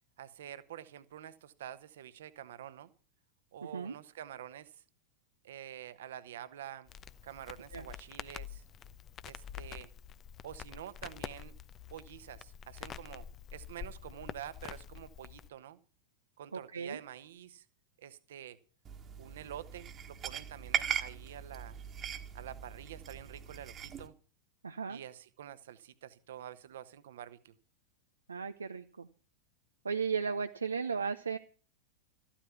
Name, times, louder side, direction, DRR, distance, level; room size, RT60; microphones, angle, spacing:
voice 1, 0.2-2.9 3.5-4.8 5.4-6.9 7.2-8.6 9.2-9.9 10.4-11.5 11.9-13.3 13.5-15.8 16.4-17.6 18.0-18.6 19.2-21.8 22.3-24.1 24.9-27.5, right 10 dB, 60° right, 15 dB, 1.2 m, -47 dB
Crackle, 6.9-15.5, left 9 dB, 30° left, 0.8 m, -47 dB
voice 2, 16.5-17.0 24.6-25.0 28.3-29.1 29.8-31.4, right 5 dB, 75° right, 9 dB, 0.6 m, -35 dB
sound 1, 18.8-24.1, right 8 dB, 25° right, 1.5 m, -39 dB
14.0 x 13.0 x 5.8 m, 0.39 s
figure-of-eight pair, 90°, 0 cm